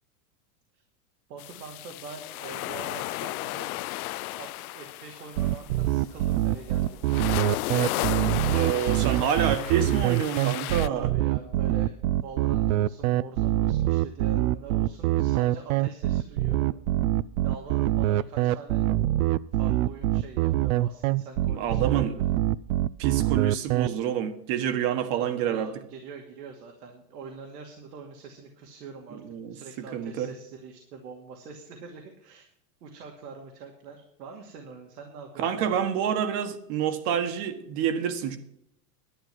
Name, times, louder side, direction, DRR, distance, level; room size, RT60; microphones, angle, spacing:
voice 1, 1.3-3.8 4.3-7.2 7.9-9.7 10.9-11.9 12.2-16.7 17.4-18.9 19.5-22.2 24.9-32.5 32.8-35.9, right 5 dB, 80° right, 2.5 m, -44 dB
sound 1, 1.4-10.9, left 18 dB, 65° left, 0.5 m, -34 dB
sound 2, 5.4-23.9, right 14 dB, 60° right, 0.6 m, -24 dB
voice 2, 8.5-11.1 21.5-22.1 23.0-25.7 29.3-29.5 29.9-30.3 35.4-38.4, right 9 dB, 45° right, 1.6 m, -27 dB
11.5 x 9.5 x 6.0 m
supercardioid pair, 150°, 47 cm